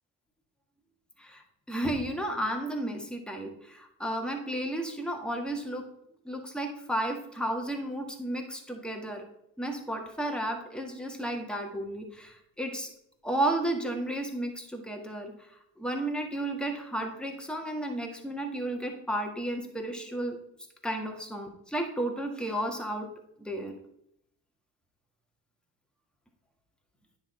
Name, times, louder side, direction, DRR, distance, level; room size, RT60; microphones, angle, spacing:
voice 1, 1.2-5.9 6.2-9.2 9.6-12.9 13.2-15.5 15.8-20.4 20.8-23.1 23.4-23.7, right 1 dB, ahead, 2 dB, 1.8 m, -33 dB
9.8 x 4.0 x 4.4 m, 0.76 s
hypercardioid pair, 50°, 42 cm